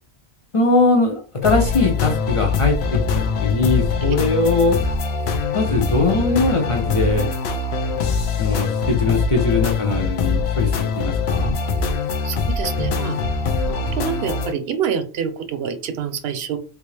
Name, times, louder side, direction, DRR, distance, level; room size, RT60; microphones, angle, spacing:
voice 1, 0.5-3.0 3.4-4.8 5.5-7.3 8.4-11.6, left 3 dB, 40° left, 1 dB, 0.5 m, -20 dB
sound 1, 1.4-14.5, left 4 dB, 85° left, 0.8 m, -23 dB
voice 2, 12.2-13.2 13.7-16.6, right 7 dB, 75° right, 9 dB, 0.8 m, -26 dB
3.3 x 2.4 x 3.2 m, 0.37 s
omnidirectional pair, 1.0 m